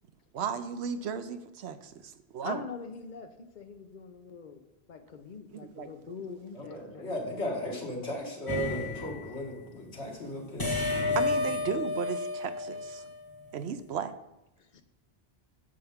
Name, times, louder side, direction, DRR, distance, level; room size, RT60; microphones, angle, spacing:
voice 1, 0.3-2.6 5.5-5.9 11.1-13.0 13.5-14.2, right 7 dB, 80° right, 10 dB, 0.9 m, -35 dB
voice 2, 2.4-3.3 3.5-4.6 4.9-7.1 14.7-14.8, left 5 dB, 50° left, 7 dB, 0.8 m, -43 dB
voice 3, 6.5-10.9, equal, 80° left, -1 dB, 2.0 m, -36 dB
sound 1, 8.5-9.4 10.6-13.4, left 3 dB, 20° left, 1.1 m, -31 dB
10.0 x 6.9 x 3.6 m, 0.92 s
omnidirectional pair, 1.1 m